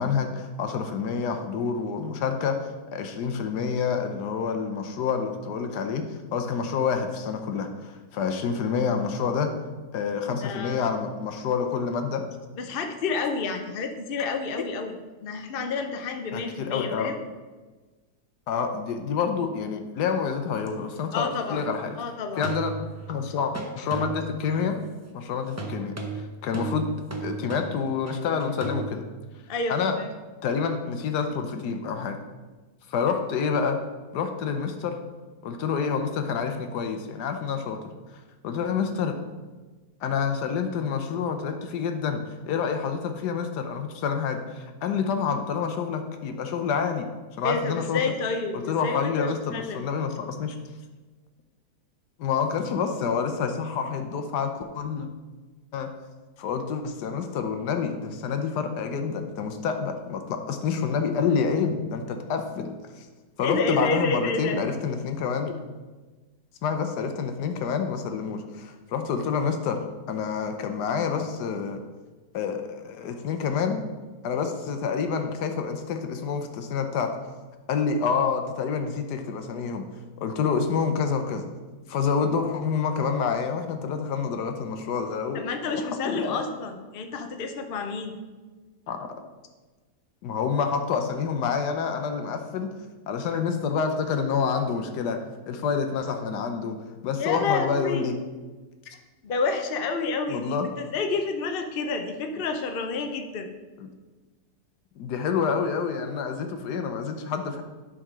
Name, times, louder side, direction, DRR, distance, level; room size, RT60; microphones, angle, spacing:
voice 1, 0.0-9.5 9.9-12.2 16.3-17.1 18.5-22.0 22.4-22.7 23.1-24.8 25.1-26.9 27.2-29.0 29.7-30.0 30.4-32.2 32.9-33.8 34.1-35.0 35.4-37.8 38.4-39.2 40.0-47.1 47.4-48.0 48.5-50.5 52.2-55.1 55.7-55.9 56.4-63.1 63.4-65.5 66.6-71.8 72.3-73.8 74.2-77.1 77.7-79.8 80.2-81.5 81.9-85.4 85.7-86.4 88.9-89.1 90.2-92.7 93.1-95.2 95.5-96.8 97.0-98.2 98.9-99.0 100.3-100.7 105.0-107.6, left 6 dB, 85° left, 6 dB, 1.3 m, -28 dB
voice 2, 10.4-10.9 12.6-14.9 15.2-17.1 21.1-21.6 22.0-22.5 29.5-30.1 47.4-49.8 63.4-64.6 85.3-88.2 97.1-98.1 99.2-103.5, left 4 dB, 50° left, 5 dB, 0.7 m, -29 dB
sound 1, 20.7-20.8 22.4-23.1 23.5-24.5 25.6-28.9, right 3 dB, 15° right, 0.5 m, -34 dB
11.0 x 3.7 x 6.0 m, 1.3 s
omnidirectional pair, 1.7 m